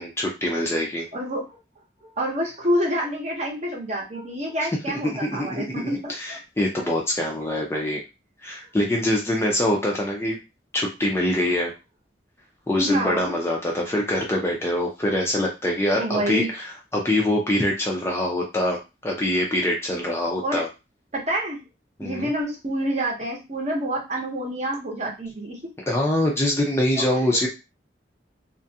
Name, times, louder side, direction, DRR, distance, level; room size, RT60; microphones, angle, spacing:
voice 1, 0.0-1.1 4.9-8.0 8.4-10.4 10.7-11.7 12.7-18.8 19.0-20.7 22.0-22.3 25.9-27.5, left 1 dB, 15° left, -1 dB, 0.4 m, -24 dB
voice 2, 1.1-1.4 2.2-6.4 12.8-13.3 15.9-16.5 20.4-20.6 21.1-21.6 22.0-25.6 27.0-27.2, right 1 dB, 40° right, -1 dB, 0.7 m, -27 dB
2.3 x 2.1 x 2.7 m, 0.27 s
head